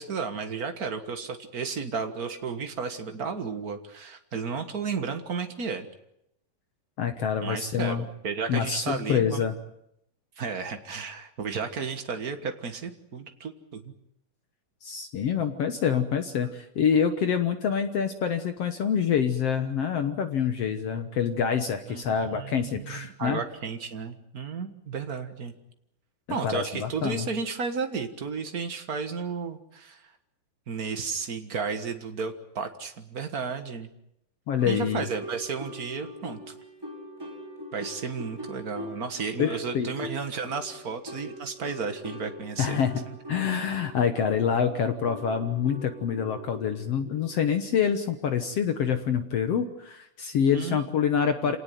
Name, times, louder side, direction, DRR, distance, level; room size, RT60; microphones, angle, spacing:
voice 1, 0.0-5.9 7.4-9.4 10.4-13.9 21.9-25.5 26.3-30.1 30.7-33.9 34.6-36.5 37.7-42.8 43.1-43.2 50.5-50.8 51.4-51.6, right 5 dB, 65° right, 7 dB, 0.9 m, -33 dB
voice 2, 7.0-8.0 8.5-9.5 14.8-23.4 26.4-27.2 34.5-35.1 39.4-39.9 42.6-43.0 43.3-51.6, left 7 dB, 60° left, 8 dB, 1.7 m, -26 dB
sound 1, 34.5-47.5, equal, 5° right, 5.0 m, -42 dB
27.5 x 18.5 x 9.4 m, 0.79 s
omnidirectional pair, 4.1 m